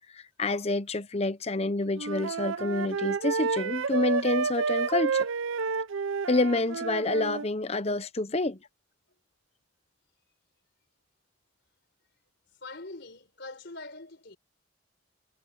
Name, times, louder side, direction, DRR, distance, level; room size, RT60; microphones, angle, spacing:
voice 1, 0.1-5.3 6.3-8.6, left 2 dB, 30° left, 0.9 m, -28 dB
Wind instrument woodwind instrument, 1.9-7.5, right 5 dB, 85° right, 0.6 m, -30 dB
voice 2, 12.6-14.4, left 2 dB, 60° left, 4.4 m, -43 dB
head